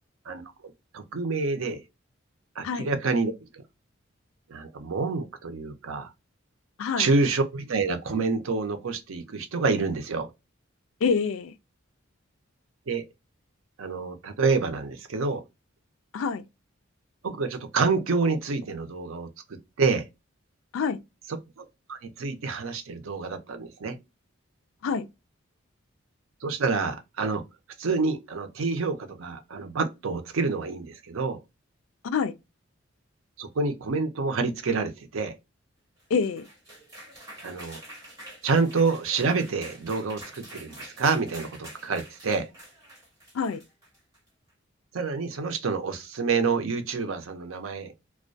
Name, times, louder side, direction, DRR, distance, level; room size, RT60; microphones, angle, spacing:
voice 1, 0.9-1.8 2.6-3.3 4.5-6.1 7.0-10.3 12.9-13.0 13.8-15.4 17.2-20.1 21.6-24.0 26.4-27.4 27.8-31.4 33.4-35.3 37.4-37.8 38.4-42.5 44.9-47.9, right 4 dB, 85° right, 0.6 m, -27 dB
voice 2, 11.0-11.5 16.1-16.4 20.7-21.0 24.8-25.1 32.0-32.3 36.1-36.5 43.3-43.6, left 5 dB, 80° left, 0.4 m, -26 dB
sound 1, 36.0-44.3, right 1 dB, 15° right, 1.2 m, -46 dB
2.3 x 2.1 x 2.5 m
head